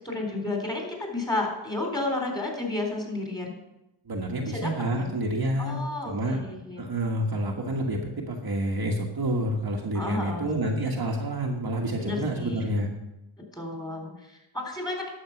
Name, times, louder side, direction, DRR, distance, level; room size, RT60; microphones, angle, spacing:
voice 1, 0.0-3.6 4.4-4.7 5.0-5.1 5.6-6.8 9.9-10.5 12.0-12.8 13.5-15.1, left 2 dB, 10° left, 0 dB, 3.9 m, -32 dB
voice 2, 4.1-6.4 6.8-8.0 8.3-12.9, right 1 dB, 45° right, 0 dB, 1.6 m, -28 dB
11.0 x 7.3 x 5.9 m, 0.91 s
cardioid pair, 85°, 49 cm